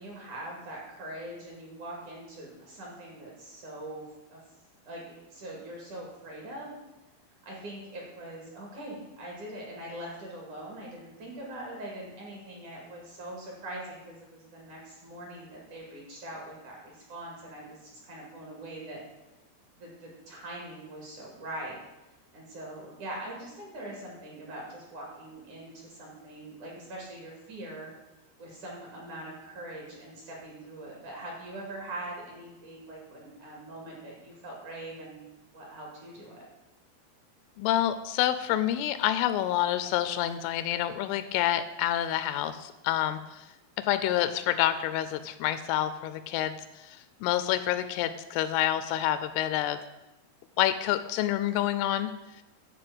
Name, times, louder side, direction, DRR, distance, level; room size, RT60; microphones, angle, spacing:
voice 1, 0.0-4.0 4.3-4.4 4.8-6.7 7.4-19.0 19.8-21.8 22.3-27.9 28.4-35.2 35.5-36.4, right 1 dB, 50° right, -2 dB, 2.8 m, -42 dB
voice 2, 37.6-43.5 43.9-46.6 46.8-49.8 50.6-52.1, left 12 dB, 85° left, 12 dB, 3.0 m, -28 dB
11.5 x 4.9 x 7.7 m, 1.0 s
omnidirectional pair, 5.8 m